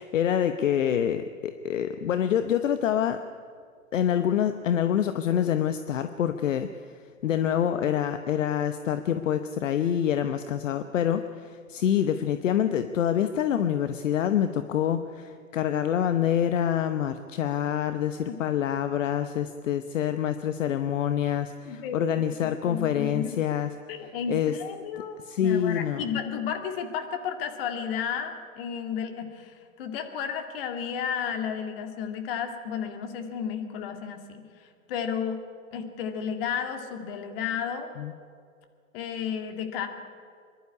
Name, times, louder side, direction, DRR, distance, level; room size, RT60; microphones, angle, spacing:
voice 1, 0.0-3.2 3.9-6.7 7.2-23.7 24.3-24.5 25.3-26.0 38.0-38.1, left 9 dB, 65° left, 9 dB, 1.0 m, -26 dB
voice 2, 21.6-23.4 23.9-35.4 35.7-37.9 38.9-39.9, left 7 dB, 45° left, 6 dB, 2.2 m, -33 dB
24.0 x 11.5 x 9.7 m, 2.2 s
hypercardioid pair, 135°, 41 cm